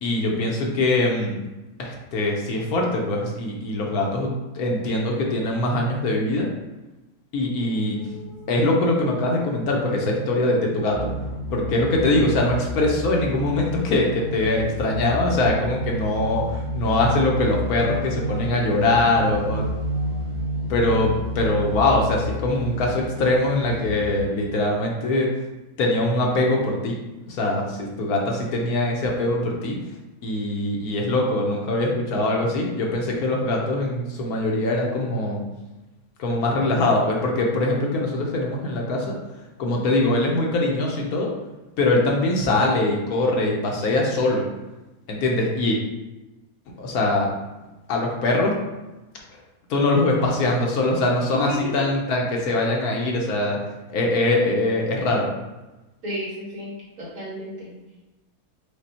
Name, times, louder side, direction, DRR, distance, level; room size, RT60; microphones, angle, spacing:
voice 1, 0.0-1.4 1.8-6.5 7.3-8.0 8.5-11.1 11.5-19.7 20.7-25.3 25.8-27.0 27.3-29.8 30.2-35.4 36.2-39.2 39.6-41.3 41.8-44.4 45.1-45.8 46.8-47.3 47.9-48.6 49.7-53.6 53.9-55.3, left 2 dB, 70° left, -1 dB, 1.2 m, -22 dB
sound 1, 7.6-22.3, right 3 dB, 90° right, 2.1 m, -33 dB
sound 2, 10.9-24.2, left 3 dB, 5° right, 0.9 m, -33 dB
voice 2, 56.0-56.7 57.0-57.7, equal, 65° right, -8 dB, 2.3 m, -31 dB
5.1 x 2.2 x 4.2 m, 1.1 s
omnidirectional pair, 1.7 m